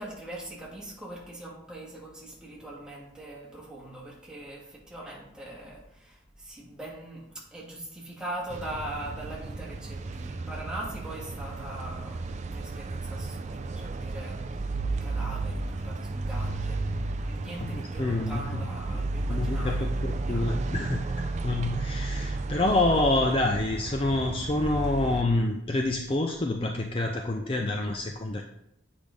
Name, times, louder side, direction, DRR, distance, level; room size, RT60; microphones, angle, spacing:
voice 1, 0.0-20.6, right 1 dB, 5° right, -5 dB, 1.7 m, -41 dB
sound 1, 8.5-25.2, right 3 dB, 35° right, 0.4 m, -33 dB
voice 2, 17.6-18.6 18.9-19.0 19.3-21.1 21.4-28.4, left 2 dB, 30° left, 3 dB, 0.4 m, -27 dB
8.2 x 5.2 x 3.4 m, 0.78 s
head